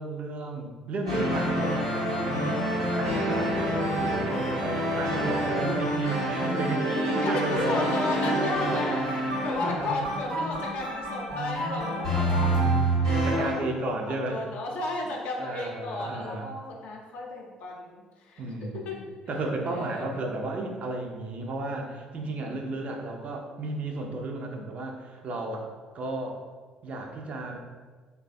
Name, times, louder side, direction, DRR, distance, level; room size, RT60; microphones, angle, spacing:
voice 1, 0.0-1.9 2.2-2.6 2.9-7.7 8.3-8.4 8.7-8.8 9.6-9.7 13.2-14.4 15.4-16.4 18.4-19.0 19.3-25.7 25.9-26.4 26.8-27.6, right 2 dB, 45° right, 2 dB, 0.4 m, -33 dB
sound 1, 1.1-13.5, right 1 dB, 90° right, 0.8 m, -27 dB
voice 2, 6.8-9.0 9.4-18.4 18.7-19.0 19.3-19.4 19.6-20.2, left 2 dB, 60° left, -1 dB, 0.5 m, -34 dB
3.2 x 2.2 x 2.5 m, 1.4 s
figure-of-eight pair, 50°, 3 cm